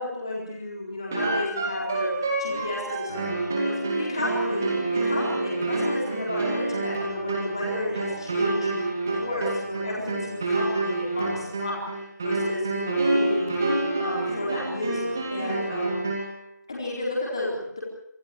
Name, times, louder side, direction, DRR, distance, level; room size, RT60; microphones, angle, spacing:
voice 1, 0.0-13.5 14.0-16.0 16.7-17.8, left 1 dB, 15° left, -4 dB, 4.1 m, -32 dB
sound 1, 1.1-16.4, right 2 dB, 10° right, 2.2 m, -28 dB
26.0 x 17.0 x 9.0 m, 0.76 s
figure-of-eight pair, 180°, 10 cm